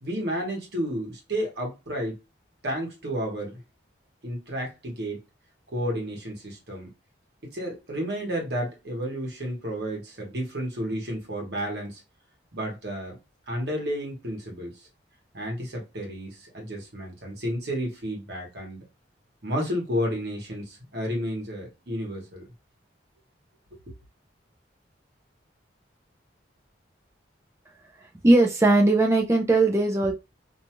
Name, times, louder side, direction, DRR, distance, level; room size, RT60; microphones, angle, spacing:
voice 1, 0.0-2.2 2.6-3.6 4.2-5.2 5.7-6.9 7.5-12.0 12.5-13.2 13.5-14.8 15.3-18.8 19.4-22.5, equal, 60° right, 1.1 m, -31 dB
voice 2, 28.2-30.1, right 2 dB, 15° right, 0.5 m, -19 dB
2.6 x 2.3 x 2.9 m
head